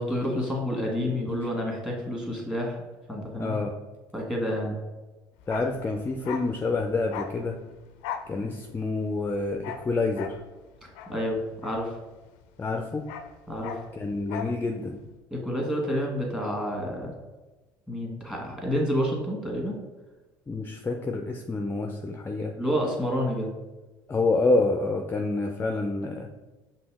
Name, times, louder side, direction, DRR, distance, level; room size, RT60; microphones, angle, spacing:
voice 1, 0.0-2.8 3.1-3.6 4.1-4.8 10.8-12.0 13.5-13.7 15.3-17.1 17.9-19.8 22.6-23.5, equal, 5° right, 0 dB, 1.4 m, -29 dB
voice 2, 3.4-3.7 5.5-7.6 8.3-10.4 12.6-13.0 13.9-15.0 20.5-22.5 24.1-26.3, left 3 dB, 20° left, 4 dB, 0.4 m, -28 dB
Bark, 5.4-12.4 12.7-14.6 14.9-15.0, left 8 dB, 80° left, 0.4 m, -40 dB
5.2 x 2.8 x 3.4 m, 1.2 s
supercardioid pair, 80°, 10 cm